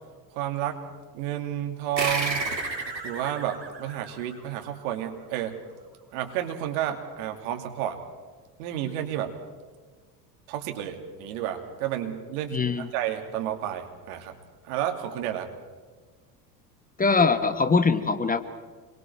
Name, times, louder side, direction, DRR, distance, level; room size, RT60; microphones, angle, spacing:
voice 1, 0.3-0.8 1.1-2.5 3.0-5.6 6.1-8.0 8.6-9.3 10.5-14.3 14.6-15.5, right 11 dB, 60° right, 4 dB, 2.7 m, -31 dB
sound 1, 2.0-4.9, right 3 dB, 90° right, 2.4 m, -32 dB
voice 2, 12.5-12.9 17.0-18.4, left 4 dB, 15° left, 9 dB, 1.2 m, -22 dB
26.5 x 23.0 x 4.6 m, 1.5 s
figure-of-eight pair, 70°, 50 cm